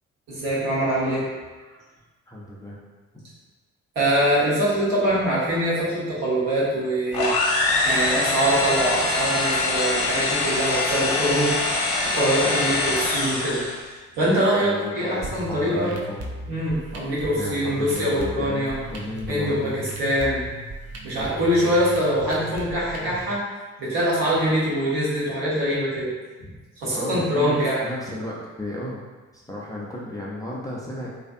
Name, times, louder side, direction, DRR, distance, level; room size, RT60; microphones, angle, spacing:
voice 1, 0.3-1.3 3.9-7.3 7.8-11.5 12.1-16.0 16.5-18.8 19.3-20.4 21.0-23.4 23.8-26.1 26.8-27.8, equal, 60° right, -7 dB, 1.1 m, -23 dB
voice 2, 2.3-2.8 14.6-16.3 17.4-19.8 21.1-21.3 26.9-29.0 29.3-31.1, left 1 dB, 10° left, -6 dB, 0.4 m, -34 dB
sound 1, 7.1-13.8, left 2 dB, 60° left, 0.7 m, -24 dB
sound 2, 15.2-23.2, right 2 dB, 40° right, 0.6 m, -37 dB
2.5 x 2.4 x 2.4 m, 1.3 s
figure-of-eight pair, 45°, 40 cm